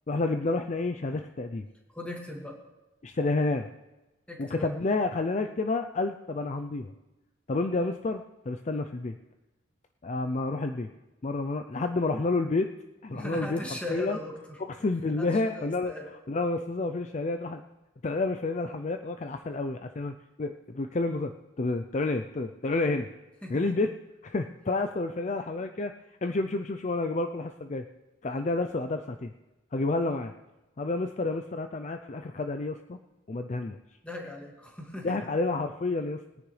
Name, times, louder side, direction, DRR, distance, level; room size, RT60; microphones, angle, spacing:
voice 1, 0.1-1.7 3.0-3.7 4.4-6.9 7.5-9.2 10.0-10.9 11.2-12.7 13.0-13.6 13.9-14.2 14.8-15.9 16.3-17.6 18.0-21.3 21.6-23.1 23.5-23.9 24.2-25.9 26.2-27.8 28.2-29.3 29.7-30.3 30.8-33.0 33.3-33.8 35.0-36.2, left 3 dB, 35° left, 7 dB, 0.4 m, -29 dB
voice 2, 1.9-2.6 4.3-4.7 13.1-14.6 15.2-16.1 23.4-23.6 34.0-35.3, left 2 dB, 5° left, -1 dB, 2.0 m, -39 dB
21.0 x 9.9 x 3.3 m, 1.0 s
head